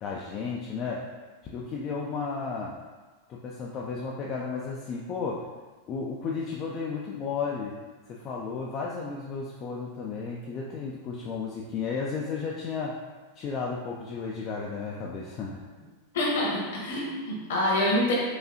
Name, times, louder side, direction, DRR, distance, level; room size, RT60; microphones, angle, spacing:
voice 1, 0.0-1.1 1.5-2.8 3.3-5.5 5.9-7.8 8.1-13.0 13.4-15.7, left 5 dB, 30° left, -3 dB, 0.3 m, -33 dB
voice 2, 16.1-18.1, left 1 dB, 55° left, -3 dB, 1.0 m, -26 dB
4.8 x 2.4 x 2.5 m, 1.4 s
figure-of-eight pair, 90°, 0 cm